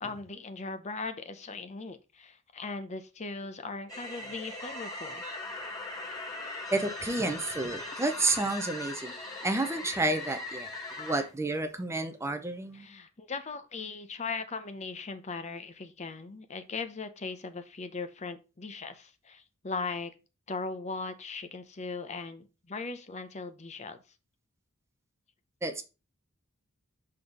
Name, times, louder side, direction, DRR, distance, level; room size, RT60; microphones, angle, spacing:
voice 1, 0.0-5.2 12.7-20.1 20.5-24.0, left 4 dB, 30° left, 0.7 m, -39 dB
sound 1, 3.9-11.3, left 2 dB, 15° left, 2.1 m, -40 dB
voice 2, 6.7-9.1 9.4-10.7 11.0-12.9 25.6-25.8, right 2 dB, 15° right, 0.6 m, -30 dB
6.2 x 3.7 x 5.0 m
head